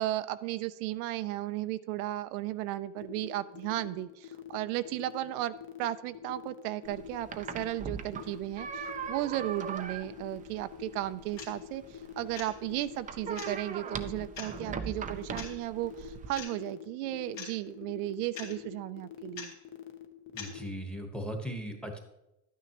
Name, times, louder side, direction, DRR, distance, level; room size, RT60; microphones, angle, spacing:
voice 1, 0.0-19.5, right 15 dB, 80° right, 12 dB, 0.6 m, -35 dB
sound 1, 2.9-20.7, left 10 dB, 25° left, 0.8 m, -46 dB
sound 2, 6.9-16.4, right 6 dB, 20° right, 0.4 m, -41 dB
sound 3, 11.4-11.5 12.4-12.5 13.4-13.5 14.4-14.5 15.4-15.5 16.4-16.5 17.4-17.5 18.4-18.5 19.4-19.5 20.4-20.5, left 6 dB, 50° left, 2.4 m, -41 dB
voice 2, 20.3-22.0, equal, ahead, 4 dB, 1.2 m, -38 dB
11.5 x 9.3 x 3.0 m, 0.91 s
supercardioid pair, 130°, 44 cm